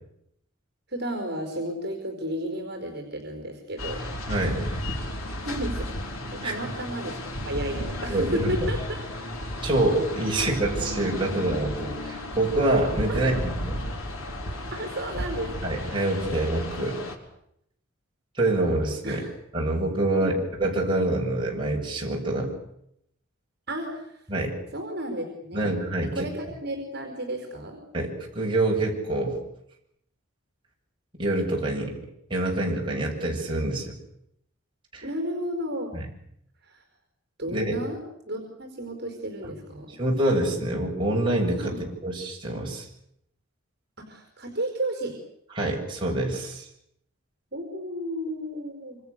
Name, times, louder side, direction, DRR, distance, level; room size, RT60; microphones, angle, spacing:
voice 1, 0.9-4.0 5.4-5.9 6.3-9.0 13.1-13.4 14.7-15.7 19.0-19.3 20.1-20.4 23.7-24.2 24.7-25.7 26.0-27.8 35.0-35.9 36.6-36.8 37.4-38.0 38.2-40.0 41.6-41.8 44.0-45.2 47.5-49.0, equal, 50° right, 3 dB, 4.6 m, -33 dB
sound 1, 3.8-17.2, left 1 dB, 85° left, 4.4 m, -33 dB
voice 2, 4.3-4.8 6.4-6.5 8.1-8.5 9.6-13.5 15.6-17.0 18.4-19.3 19.5-20.3 20.6-22.5 24.3-24.5 25.5-26.2 27.9-29.4 31.2-32.0 32.3-33.9 34.9-35.1 35.9-36.0 37.5-37.8 40.0-41.7 42.0-42.9 45.6-46.7, right 2 dB, 25° right, -2 dB, 7.0 m, -26 dB
27.0 x 25.5 x 6.8 m, 0.76 s
head